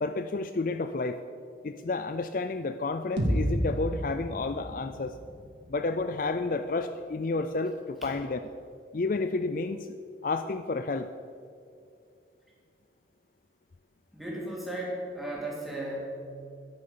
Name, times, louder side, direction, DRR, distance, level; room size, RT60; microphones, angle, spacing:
voice 1, 0.0-1.2 1.6-5.1 5.7-8.4 8.9-10.0 10.2-11.1, left 3 dB, 50° left, 9 dB, 0.4 m, -30 dB
sound 1, 3.2-7.1, equal, 80° right, 2.5 m, -33 dB
voice 2, 14.1-16.3, right 1 dB, ahead, -5 dB, 3.3 m, -35 dB
12.5 x 10.5 x 6.8 m, 2.5 s
head